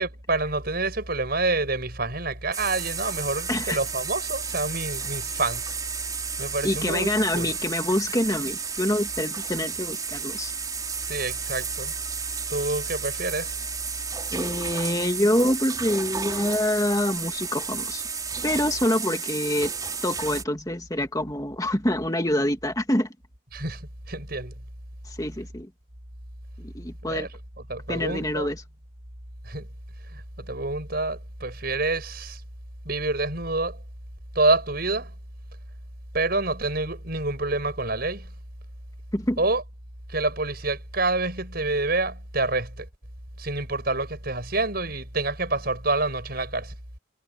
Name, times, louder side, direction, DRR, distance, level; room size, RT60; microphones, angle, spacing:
voice 1, 0.0-5.7 6.4-7.5 11.0-11.9 12.5-13.6 23.5-24.6 27.0-27.4 27.7-28.6 29.4-29.7 30.1-32.4 32.9-33.8 34.4-35.1 36.1-38.3 39.4-39.6 40.1-42.9 43.4-46.7, right 2 dB, 50° right, 7.0 m, -27 dB
sound 1, 2.5-20.4, right 5 dB, 20° right, 4.6 m, -32 dB
voice 2, 6.6-10.5 14.3-18.0 18.4-19.7 20.0-23.1 25.2-25.7 26.6-27.3 27.9-28.6 39.1-39.4, left 1 dB, 20° left, 2.3 m, -26 dB
head